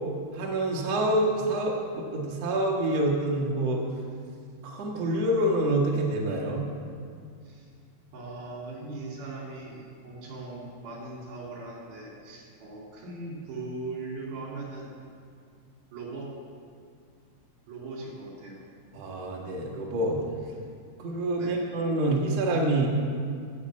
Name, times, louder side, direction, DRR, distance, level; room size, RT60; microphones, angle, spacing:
voice 1, 0.3-3.8 4.6-6.7 18.9-20.2 21.0-22.9, right 1 dB, 55° right, -2 dB, 2.0 m, -27 dB
voice 2, 8.1-14.9 15.9-16.3 17.7-18.6 21.4-21.6, right 3 dB, 70° right, -3 dB, 4.3 m, -39 dB
11.0 x 6.7 x 8.5 m, 2.2 s
omnidirectional pair, 4.5 m